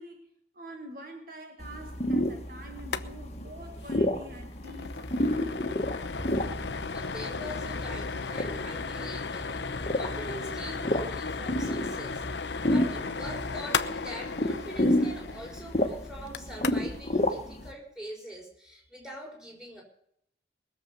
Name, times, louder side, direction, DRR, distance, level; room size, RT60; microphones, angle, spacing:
voice 1, 0.0-5.6, right 1 dB, 50° right, 4 dB, 1.8 m, -46 dB
sound 1, 1.6-17.7, left 1 dB, 35° left, 1.4 m, -31 dB
sound 2, 2.8-3.1 3.3-3.4 3.8-3.9 4.3-17.0, left 4 dB, 70° left, 0.8 m, -35 dB
sound 3, 6.2-13.6, left 1 dB, 30° right, 5.0 m, -43 dB
voice 2, 6.9-12.2 12.6-19.8, equal, 5° right, 0 dB, 4.3 m, -43 dB
20.5 x 7.3 x 6.8 m, 0.70 s
head